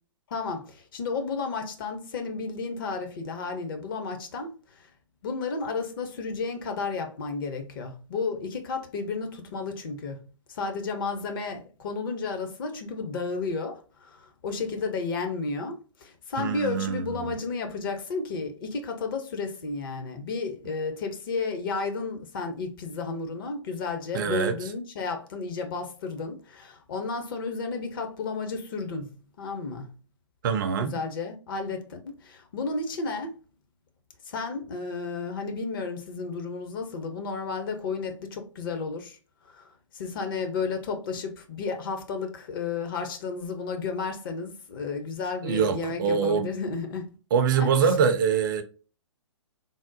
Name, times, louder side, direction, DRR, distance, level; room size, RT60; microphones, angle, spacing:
voice 1, 0.3-4.9 5.2-29.9 30.8-33.3 34.3-39.2 39.5-47.2 47.6-47.9, left 4 dB, 45° left, 0.7 m, -32 dB
voice 2, 16.4-17.4 24.1-24.6 30.4-31.0 45.4-46.5 47.3-48.6, right 6 dB, 40° right, 0.4 m, -24 dB
3.5 x 2.0 x 2.6 m
figure-of-eight pair, 125°, 16 cm